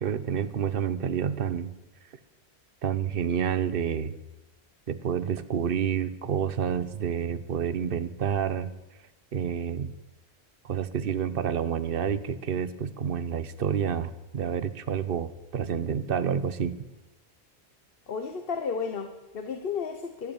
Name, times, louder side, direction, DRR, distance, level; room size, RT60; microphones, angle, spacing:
voice 1, 0.0-1.7 2.8-4.2 4.9-8.7 9.3-9.9 10.6-16.8, right 8 dB, 60° right, 13 dB, 1.0 m, -29 dB
voice 2, 18.1-20.3, left 5 dB, 60° left, 6 dB, 1.3 m, -33 dB
13.5 x 12.0 x 7.2 m, 1.0 s
omnidirectional pair, 1.1 m